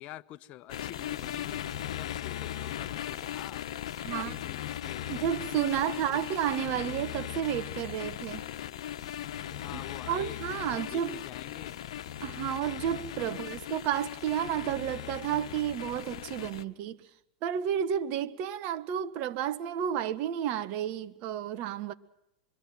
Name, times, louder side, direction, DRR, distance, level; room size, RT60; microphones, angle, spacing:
voice 1, 0.0-1.7 1.9-3.6 4.1-5.3 5.9-6.2 9.5-10.4 10.7-11.8 13.2-13.5, left 14 dB, 45° left, 1.0 m, -46 dB
sound 1, 0.7-16.6, left 11 dB, 75° left, 1.2 m, -38 dB
voice 2, 4.0-4.4 5.1-8.4 9.7-9.8 10.1-11.2 12.2-17.0 17.4-21.9, right 10 dB, 50° right, 1.3 m, -31 dB
26.5 x 22.5 x 5.9 m
hypercardioid pair, 105°, 3 cm